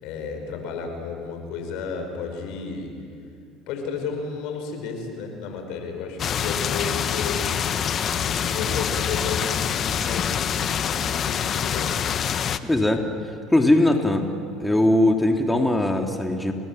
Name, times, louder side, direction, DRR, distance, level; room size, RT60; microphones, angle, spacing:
voice 1, 0.0-2.9 3.7-12.0, left 5 dB, 70° left, 5 dB, 5.4 m, -33 dB
sound 1, 6.2-12.6, left 8 dB, 45° left, 1.2 m, -25 dB
voice 2, 12.6-13.0 13.5-14.3 14.6-16.5, left 1 dB, 10° left, 3 dB, 2.5 m, -20 dB
29.5 x 21.0 x 7.7 m, 2.4 s
supercardioid pair, 90°, 0 cm